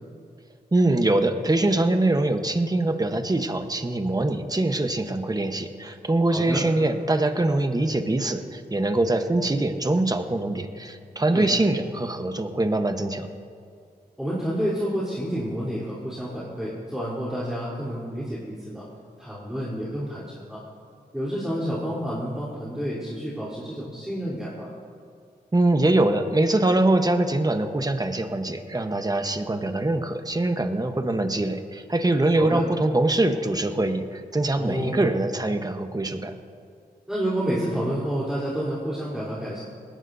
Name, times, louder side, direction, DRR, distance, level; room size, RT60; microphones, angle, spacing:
voice 1, 0.7-13.3 25.5-36.3, right 2 dB, 25° right, 7 dB, 1.1 m, -23 dB
voice 2, 6.3-6.6 11.3-11.5 14.2-18.9 19.2-20.6 21.1-24.7 32.4-32.7 34.6-35.1 37.1-39.6, equal, 5° right, -8 dB, 3.8 m, -29 dB
19.5 x 16.5 x 2.8 m, 2.2 s
cardioid pair, 65°, 17 cm